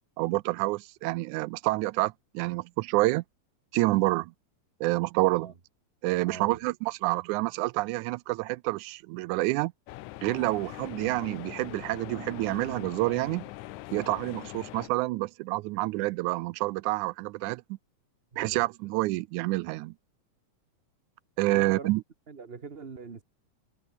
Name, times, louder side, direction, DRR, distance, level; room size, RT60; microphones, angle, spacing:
voice 1, 0.2-3.2 3.7-4.3 4.8-5.5 6.0-9.7 10.2-13.4 13.9-17.6 18.4-20.0 21.4-22.0, right 21 dB, 85° right, 2.0 m, -28 dB
voice 2, 6.3-6.6 18.3-18.7 21.5-21.9 22.3-23.2, right 5 dB, 55° right, 0.6 m, -42 dB
sound 1, 9.9-14.9, left 18 dB, 85° left, 2.1 m, -42 dB
omnidirectional pair, 3.4 m